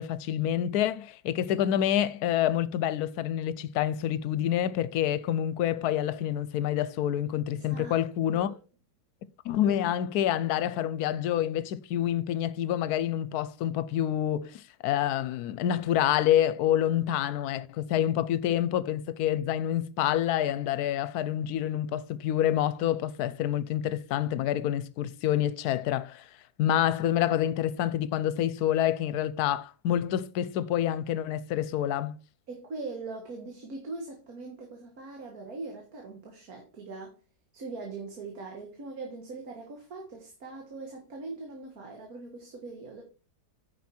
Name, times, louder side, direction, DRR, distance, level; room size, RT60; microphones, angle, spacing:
voice 1, 0.0-8.5 9.4-26.3 26.6-32.2, left 11 dB, 75° left, 1.1 m, -27 dB
voice 2, 7.5-8.1 8.3-8.5 32.5-37.1 37.5-43.0, right 3 dB, 60° right, 2.0 m, -41 dB
9.5 x 5.9 x 4.3 m
omnidirectional pair, 1.7 m